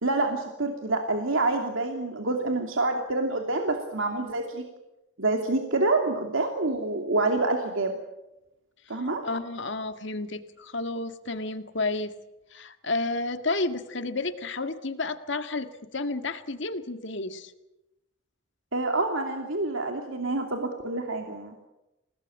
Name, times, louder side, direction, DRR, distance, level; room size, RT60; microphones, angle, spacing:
voice 1, 0.0-4.6 5.2-8.0 8.9-9.2 18.7-21.6, right 2 dB, 75° right, 3 dB, 2.8 m, -27 dB
voice 2, 8.9-12.1 12.5-17.5, left 2 dB, 60° left, 8 dB, 2.0 m, -31 dB
29.0 x 19.0 x 8.9 m, 0.95 s
head